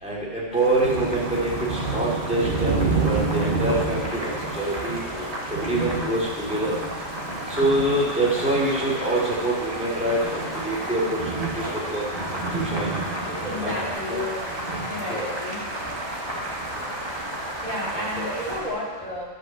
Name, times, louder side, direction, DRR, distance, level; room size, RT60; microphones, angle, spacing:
voice 1, 0.0-5.0 5.5-6.7 7.5-11.6 11.9-12.1 12.5-12.9 13.6-13.7 14.1-14.2 15.1-15.3 16.7-16.9 17.9-18.3, right 1 dB, 5° right, -7 dB, 2.7 m, -25 dB
Boiling, 0.5-18.7, equal, 25° right, 1.6 m, -34 dB
sound 1, 0.8-18.6, right 4 dB, 55° right, 1.2 m, -31 dB
sound 2, 2.7-5.5 5.9-6.0 6.3-7.2 7.4-13.9, equal, 85° right, 2.0 m, -40 dB
voice 2, 13.4-14.4 14.7-15.6 17.6-19.3, left 1 dB, 20° left, -6 dB, 2.7 m, -32 dB
10.5 x 5.4 x 7.0 m, 1.4 s
omnidirectional pair, 1.0 m